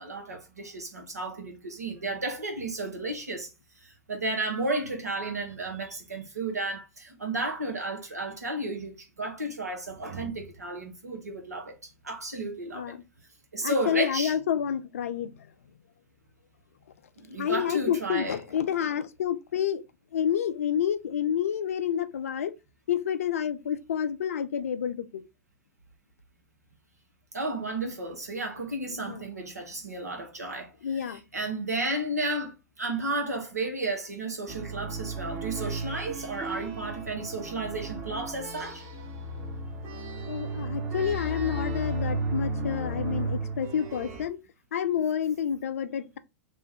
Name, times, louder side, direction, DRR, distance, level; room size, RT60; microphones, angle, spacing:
voice 1, 0.0-3.5 3.8-12.9 13.5-14.3 17.2-18.4 27.3-38.8, right 2 dB, 80° right, 1.0 m, -33 dB
voice 2, 13.6-15.3 17.4-19.8 20.1-22.5 22.9-25.2 27.8-27.9 28.9-29.2 30.8-31.2 40.3-44.4 44.7-46.2, left 9 dB, 60° left, 0.4 m, -29 dB
sound 1, 34.5-44.3, right 2 dB, 30° right, 0.9 m, -34 dB
3.0 x 2.2 x 3.3 m
figure-of-eight pair, 100°, 9 cm